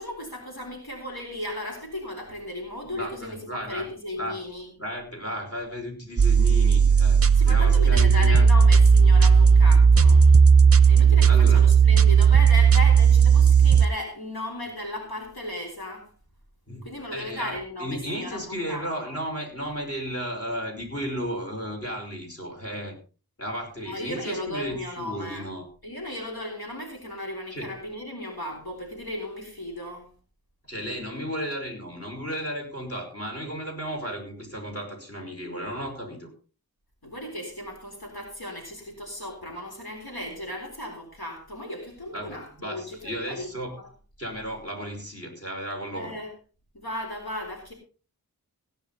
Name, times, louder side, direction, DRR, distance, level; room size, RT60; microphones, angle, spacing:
voice 1, 0.0-4.7 7.3-10.4 10.9-16.1 16.8-19.2 23.8-25.5 25.8-30.1 37.0-43.9 45.9-46.3 46.7-47.7, left 1 dB, 80° left, 0 dB, 3.8 m, -36 dB
voice 2, 2.9-3.8 4.2-4.4 4.8-8.5 11.3-11.6 16.7-16.8 17.1-23.0 23.4-25.7 27.5-27.7 30.7-36.3 42.1-43.7 44.2-46.2, equal, 40° left, 2 dB, 5.2 m, -34 dB
sound 1, 6.2-13.9, right 6 dB, 40° right, 0.6 m, -15 dB
17.5 x 9.9 x 4.0 m, 0.37 s
wide cardioid pair, 50°, 37 cm